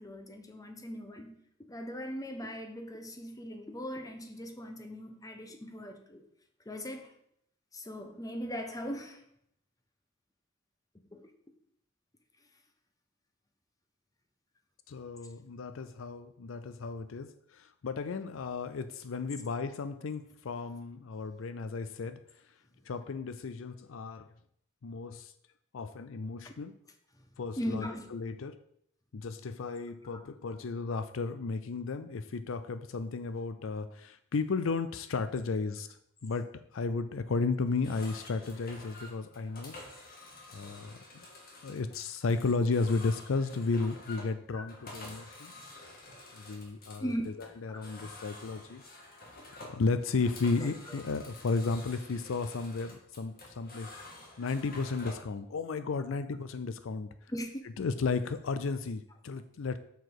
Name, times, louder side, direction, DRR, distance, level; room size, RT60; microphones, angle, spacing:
voice 1, 0.0-1.3 1.7-6.2 6.6-7.1 7.7-9.2 11.1-11.2 26.4-26.5 27.1-27.2 27.6-28.1 30.1-30.2 44.5-44.6 47.0-47.3 47.7-47.9 50.6-51.0 53.9-54.0 57.3-57.6, equal, 20° left, 5 dB, 1.0 m, -39 dB
voice 2, 14.9-22.2 22.9-24.3 24.8-25.3 25.7-26.7 27.4-27.9 28.1-28.6 29.1-35.9 36.2-36.5 36.7-39.8 40.5-41.3 41.6-45.5 46.3-47.1 47.6-48.8 49.6-57.1 57.8-59.8, left 4 dB, 75° left, 11 dB, 0.5 m, -34 dB
sound 1, 37.7-55.3, left 2 dB, 50° left, 1.9 m, -50 dB
7.0 x 6.0 x 4.7 m, 0.71 s
head